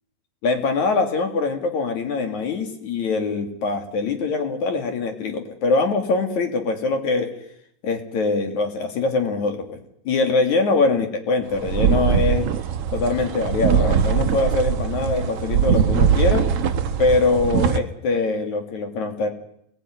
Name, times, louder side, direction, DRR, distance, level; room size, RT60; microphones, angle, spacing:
voice 1, 0.4-7.3 7.8-9.8 10.1-12.5 12.9-16.5 17.0-19.3, left 3 dB, 55° left, 5 dB, 3.8 m, -23 dB
sound 1, 11.5-17.8, right 7 dB, 65° right, 1.5 m, -21 dB
28.0 x 20.0 x 9.5 m, 0.76 s
omnidirectional pair, 4.3 m